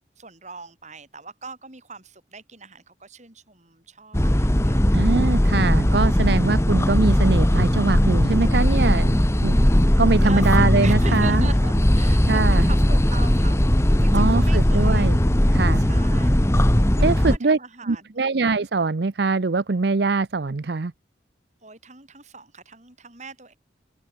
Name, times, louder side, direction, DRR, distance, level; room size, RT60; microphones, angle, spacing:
voice 1, 0.2-5.0 10.2-13.6 14.0-15.1 15.7-18.2 21.6-23.5, right 4 dB, 40° right, 5.1 m, -40 dB
sound 1, 4.1-17.4, equal, 15° left, 1.1 m, -18 dB
voice 2, 4.9-9.6 10.0-11.5 12.3-12.7 14.1-15.2 15.5-15.9 17.0-17.6 17.9-20.9, right 3 dB, 60° right, 0.6 m, -23 dB
open air
head